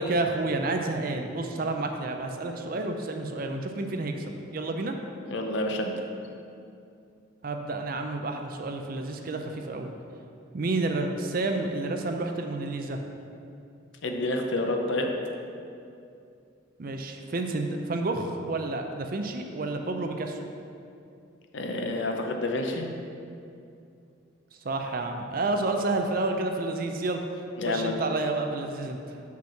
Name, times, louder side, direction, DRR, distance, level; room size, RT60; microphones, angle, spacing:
voice 1, 0.0-4.9 7.4-9.9 10.5-13.0 16.8-20.4 24.6-27.2 27.7-29.2, right 2 dB, 45° right, 5 dB, 0.5 m, -30 dB
voice 2, 5.3-6.0 14.0-15.1 21.5-22.9 27.6-28.0, left 2 dB, 65° left, 3 dB, 0.7 m, -28 dB
6.0 x 4.4 x 5.8 m, 2.6 s
head